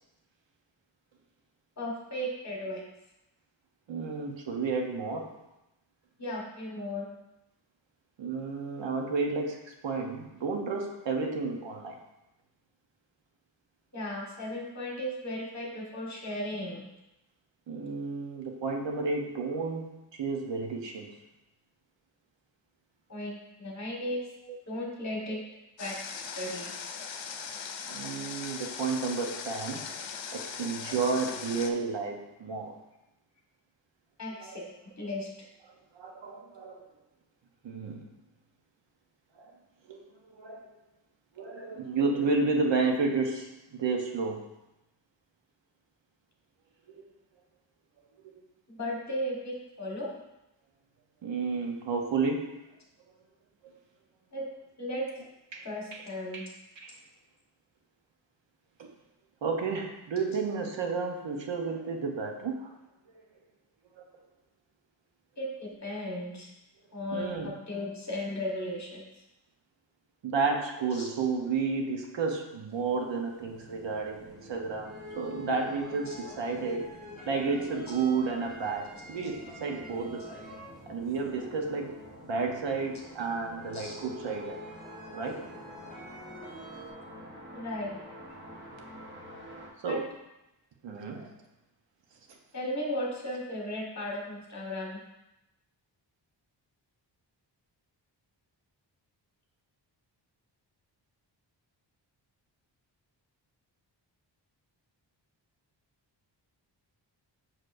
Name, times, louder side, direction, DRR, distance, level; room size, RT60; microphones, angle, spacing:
voice 1, 1.8-2.8 6.2-7.1 13.9-16.8 23.1-24.2 24.7-25.4 25.8-26.9 34.2-34.6 35.0-35.3 48.7-50.1 54.3-54.4 54.8-55.0 55.6-56.4 65.4-66.5 66.9-69.0 70.9-71.1 76.1-76.2 83.7-83.9 87.5-88.0 89.9-90.0 92.5-95.0, left 1 dB, 40° left, -3 dB, 1.5 m, -36 dB
voice 2, 3.9-5.3 8.2-12.0 17.7-21.2 27.9-29.8 30.3-32.8 34.4-34.6 35.9-36.8 37.6-38.1 39.4-39.5 39.9-40.7 41.4-44.5 46.9-47.0 48.2-48.4 51.2-52.6 55.5-56.0 56.3-56.5 56.8-56.9 58.8-58.9 59.4-62.8 64.0-64.1 67.1-67.5 70.2-77.0 77.3-80.5 80.9-84.6 85.1-85.5 89.8-90.1 90.8-91.4, right 4 dB, 75° right, 2 dB, 0.9 m, -32 dB
Water, 25.8-31.7, left 6 dB, 80° left, 0.7 m, -39 dB
sound 1, 73.0-73.1 73.6-74.3 74.8-80.8 81.1-82.6 83.1-86.9, left 2 dB, ahead, 1.2 m, -47 dB
sound 2, 73.4-89.7, right 1 dB, 25° right, 1.1 m, -49 dB
6.5 x 6.1 x 2.6 m, 0.92 s
wide cardioid pair, 170°, 44 cm